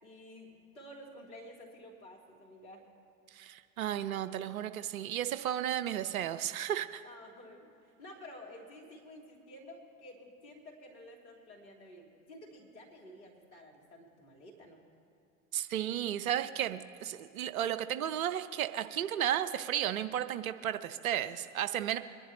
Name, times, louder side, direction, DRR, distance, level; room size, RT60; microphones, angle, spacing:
voice 1, 0.0-2.9 7.0-7.7 8.0-14.8, left 1 dB, 80° left, -1 dB, 3.1 m, -51 dB
voice 2, 3.3-7.0 15.5-22.0, right 11 dB, 75° right, 12 dB, 0.8 m, -33 dB
24.0 x 11.0 x 3.0 m, 2.6 s
hypercardioid pair, 75°, 42 cm